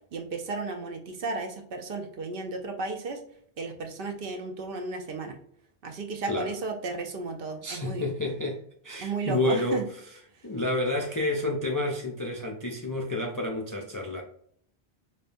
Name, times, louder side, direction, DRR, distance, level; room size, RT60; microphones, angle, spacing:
voice 1, 0.1-3.2 3.6-5.4 5.8-8.1 9.0-9.9, right 3 dB, 60° right, 4 dB, 0.8 m, -34 dB
voice 2, 7.6-9.8 10.4-14.2, left 2 dB, 35° left, 0 dB, 0.3 m, -29 dB
5.2 x 2.2 x 2.5 m, 0.63 s
omnidirectional pair, 1.1 m